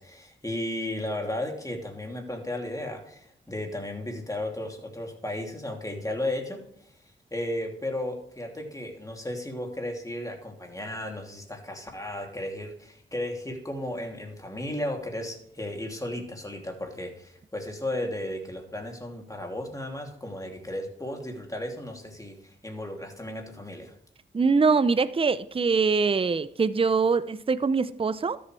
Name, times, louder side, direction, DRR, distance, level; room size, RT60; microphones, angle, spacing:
voice 1, 0.0-6.9 7.3-23.9, left 1 dB, 15° left, 2.8 m, -34 dB
voice 2, 24.3-28.4, right 4 dB, 30° right, 0.5 m, -23 dB
13.0 x 7.7 x 3.3 m
cardioid pair, 45°, 20 cm